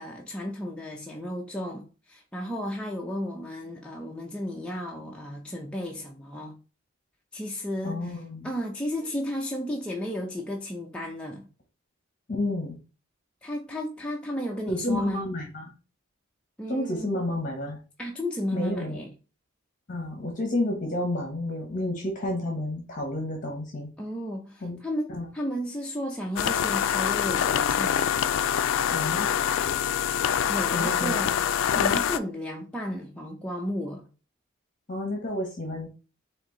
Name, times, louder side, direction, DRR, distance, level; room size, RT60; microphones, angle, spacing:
voice 1, 0.0-6.5 7.3-11.5 13.4-15.2 16.6-17.2 18.0-19.1 24.0-28.1 30.2-34.1, equal, 5° left, 0.5 m, -33 dB
voice 2, 7.8-8.5 12.3-12.8 14.7-15.7 16.7-17.8 18.5-19.0 19.9-23.9 24.6-24.8 25.1-25.2 28.9-29.3 30.7-31.2 34.9-35.9, left 1 dB, 40° left, 1.0 m, -30 dB
sound 1, 26.4-32.2, left 9 dB, 75° left, 0.3 m, -25 dB
4.5 x 2.6 x 3.8 m
head